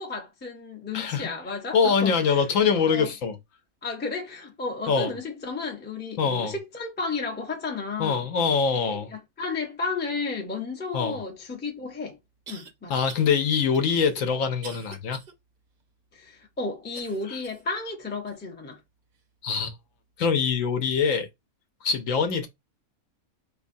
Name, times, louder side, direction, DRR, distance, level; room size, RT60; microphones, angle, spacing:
voice 1, 0.0-3.1 3.8-8.2 8.9-12.2 12.5-12.9 16.1-18.8, left 4 dB, 15° left, 0.4 m, -33 dB
voice 2, 0.9-1.3 1.7-3.4 4.9-5.1 6.2-6.5 8.0-9.1 10.9-11.2 12.9-15.2 17.3-17.5 19.4-19.7 20.2-21.3 21.8-22.5, left 6 dB, 70° left, 1.0 m, -24 dB
sound 1, 11.5-11.6 12.5-12.7 13.1-13.3 13.7-15.3 15.8-15.9 16.9-17.7 18.3-18.4 19.1-19.2, right 5 dB, 60° right, 0.5 m, -46 dB
4.5 x 2.3 x 2.5 m
omnidirectional pair, 1.5 m